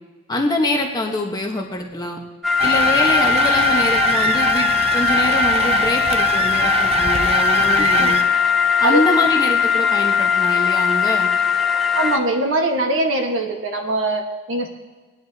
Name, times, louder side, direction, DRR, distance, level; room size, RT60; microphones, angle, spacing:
voice 1, 0.3-2.2 2.6-8.2 8.8-11.3, left 1 dB, 20° left, 1 dB, 1.2 m, -24 dB
sound 1, 2.4-12.2, left 7 dB, ahead, 0.8 m, -19 dB
sound 2, 2.6-8.2, right 2 dB, 30° right, 0.6 m, -22 dB
voice 2, 11.9-14.7, right 2 dB, 75° right, 3 dB, 1.4 m, -22 dB
18.5 x 10.5 x 2.8 m, 1.3 s
head